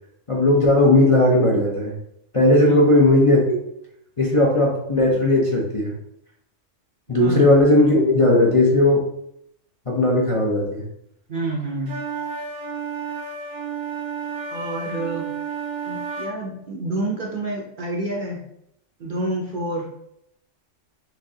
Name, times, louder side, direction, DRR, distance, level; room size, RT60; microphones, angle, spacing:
voice 1, 0.3-1.9 2.3-3.6 4.2-5.9 7.1-9.0 9.9-10.9, left 1 dB, 30° left, -3 dB, 0.7 m, -17 dB
voice 2, 11.3-12.0 14.5-15.3 15.8-18.4 19.0-19.9, right 1 dB, 45° right, -1 dB, 0.8 m, -28 dB
sound 1, 11.9-16.3, right 6 dB, 85° right, 1.4 m, -31 dB
6.0 x 2.9 x 2.8 m, 0.75 s
omnidirectional pair, 1.3 m